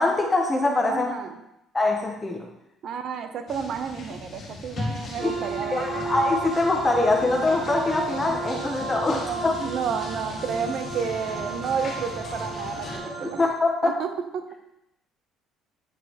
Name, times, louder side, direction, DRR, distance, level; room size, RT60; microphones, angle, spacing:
voice 1, 0.0-1.1 1.7-2.5 5.2-5.4 5.7-9.5 13.1-14.0, left 2 dB, 15° left, 2 dB, 0.7 m, -23 dB
voice 2, 0.8-1.4 2.8-6.0 9.1-13.5 13.8-14.4, right 6 dB, 55° right, 8 dB, 0.7 m, -31 dB
sound 1, 3.5-13.0, left 3 dB, 45° left, 1.8 m, -38 dB
sound 2, 5.2-13.5, right 3 dB, 35° right, 1.9 m, -34 dB
8.7 x 4.9 x 2.9 m, 0.85 s
cardioid pair, 125°, 0 cm